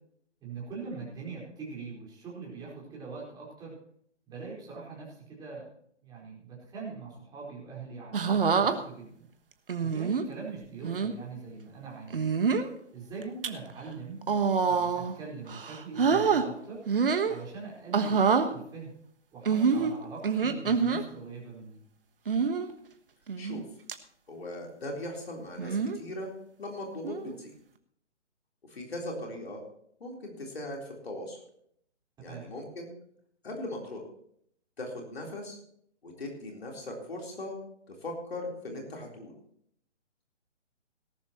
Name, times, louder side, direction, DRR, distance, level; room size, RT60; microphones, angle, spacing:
voice 1, 0.4-3.8 4.3-5.7 6.0-9.2 9.8-12.3 12.9-14.2 14.6-16.8 17.2-18.9 19.3-21.8 32.2-32.4, right 4 dB, 10° right, -4 dB, 4.5 m, -42 dB
sound 1, 8.1-8.7 9.7-10.3 10.8-11.1 12.1-12.7 13.2-13.5 14.2-15.1 15.5-16.4 16.9-17.4 17.9-18.5 19.5-21.0 22.3-22.7 23.3-23.6 23.9-24.0 25.6-26.0 27.0-27.3, right 5 dB, 50° right, 1.3 m, -26 dB
voice 2, 24.3-26.3 26.6-27.5 28.7-29.6 30.0-31.4 32.2-32.9 33.4-34.0 34.8-35.6 36.0-37.6 37.9-39.4, left 1 dB, 55° left, 0 dB, 3.8 m, -39 dB
18.0 x 12.0 x 3.0 m, 0.67 s
figure-of-eight pair, 140°, 35 cm